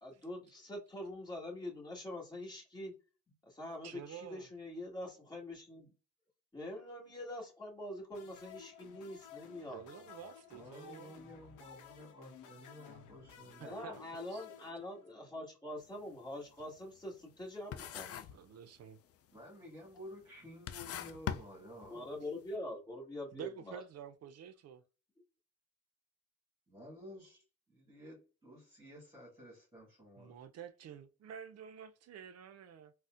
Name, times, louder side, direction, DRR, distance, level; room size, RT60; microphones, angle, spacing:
voice 1, 0.0-2.9 3.4-5.9 6.5-9.8 13.5-18.2 21.8-23.8, left 1 dB, 15° left, 1.4 m, -44 dB
voice 2, 3.8-4.5 9.7-11.2 12.9-13.3 13.6-14.0 14.3-14.5 14.8-14.9 18.3-19.0 23.3-24.8 30.2-32.9, right 8 dB, 55° right, 0.5 m, -50 dB
sound 1, 8.1-15.4, left 8 dB, 85° left, 0.7 m, -55 dB
voice 3, 10.5-14.0 19.3-22.1 26.7-30.4, left 1 dB, 15° right, 1.7 m, -53 dB
sound 2, 15.8-16.0 16.4-17.5 17.7-18.5 18.8-19.3 19.9-20.0 20.5-22.2, left 10 dB, 50° left, 0.4 m, -42 dB
4.0 x 2.1 x 2.4 m
cardioid pair, 90°, 30 cm